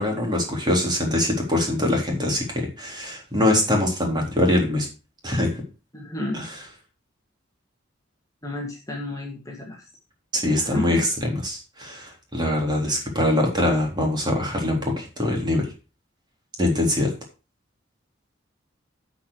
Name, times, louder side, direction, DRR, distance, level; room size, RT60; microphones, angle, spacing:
voice 1, 0.0-4.9 5.2-5.5 6.3-6.4 10.3-15.7 16.6-17.1, left 1 dB, 25° right, 0 dB, 3.8 m, -23 dB
voice 2, 5.9-6.5 8.4-9.9 10.6-11.0, left 2 dB, 20° left, 0 dB, 2.3 m, -32 dB
12.0 x 6.0 x 4.9 m, 0.31 s
head